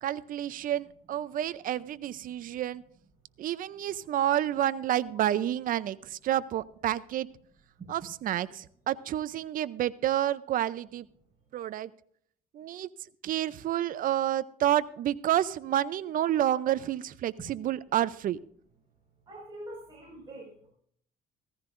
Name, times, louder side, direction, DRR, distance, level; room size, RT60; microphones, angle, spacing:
voice 1, 0.0-2.8 3.4-7.3 7.9-11.1 11.5-11.9 12.5-12.9 13.2-18.4, right 12 dB, 55° right, 15 dB, 0.6 m, -29 dB
voice 2, 19.3-20.7, right 1 dB, 25° right, -5 dB, 5.3 m, -44 dB
16.0 x 14.0 x 2.6 m, 0.63 s
cardioid pair, 110°, 17 cm